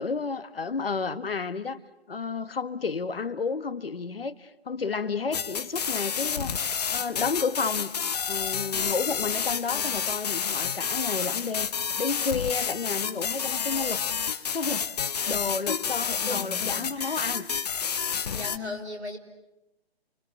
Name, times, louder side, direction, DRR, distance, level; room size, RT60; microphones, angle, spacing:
voice 1, 0.0-1.8 2.1-6.6 6.9-7.9 8.3-14.0 14.5-14.9 15.3-17.5, left 5 dB, 65° left, 12 dB, 1.6 m, -31 dB
sound 1, 5.3-18.6, left 7 dB, 40° left, 1.2 m, -30 dB
voice 2, 16.3-17.5 18.2-19.2, left 2 dB, 90° right, 6 dB, 5.1 m, -39 dB
29.0 x 23.5 x 8.9 m, 0.91 s
figure-of-eight pair, 145°, 32 cm